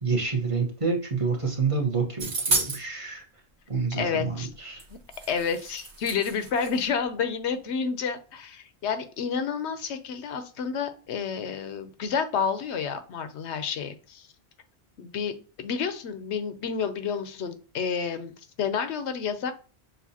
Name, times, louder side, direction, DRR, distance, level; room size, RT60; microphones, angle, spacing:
voice 1, 0.0-3.2 3.7-4.8, right 4 dB, 30° right, 0 dB, 1.1 m, -28 dB
sound 1, 2.2-2.8 4.8-4.9 5.1-6.8, right 3 dB, 85° right, 1.6 m, -30 dB
voice 2, 3.9-4.5 4.9-5.0 5.3-14.3 15.0-19.5, left 6 dB, 85° left, 10 dB, 1.0 m, -30 dB
6.7 x 2.5 x 2.8 m, 0.37 s
omnidirectional pair, 1.1 m